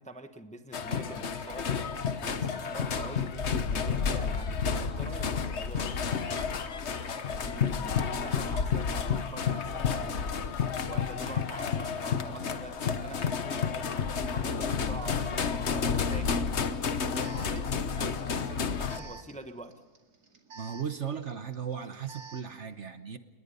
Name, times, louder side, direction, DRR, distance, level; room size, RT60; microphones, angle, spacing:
voice 1, 0.0-6.0 7.3-10.5 10.9-16.5 17.1-19.7, right 2 dB, 5° left, 8 dB, 1.0 m, -46 dB
sound 1, 0.7-19.0, left 6 dB, 50° left, 1.3 m, -31 dB
Alarm, 15.2-22.6, right 4 dB, 75° right, 2.9 m, -52 dB
voice 2, 20.5-23.2, right 7 dB, 50° right, 10 dB, 1.2 m, -36 dB
29.5 x 20.0 x 5.4 m, 1.3 s
omnidirectional pair, 1.7 m